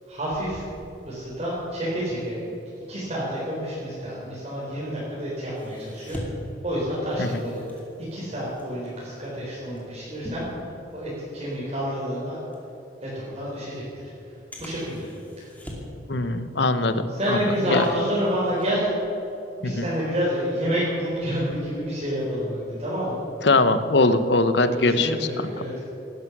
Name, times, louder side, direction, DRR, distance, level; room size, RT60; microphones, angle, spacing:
voice 1, 0.1-0.6 1.1-2.4 2.9-6.2 6.6-7.8 8.1-10.5 10.9-12.4 13.0-13.8 14.2-15.1 15.4-15.5 17.1-18.9 19.6-23.2 24.7-25.8, equal, 35° right, -8 dB, 4.2 m, -29 dB
sound 1, 5.5-11.3 11.7-11.9 12.5-12.6 13.5-13.6 14.5-16.0 16.4-16.8 17.1-19.3 19.7-20.0, equal, 10° left, 2.5 m, -42 dB
voice 2, 16.1-17.8 19.6-19.9 23.4-25.2, left 2 dB, 65° left, 11 dB, 1.0 m, -21 dB
18.0 x 12.0 x 6.2 m, 3.0 s
head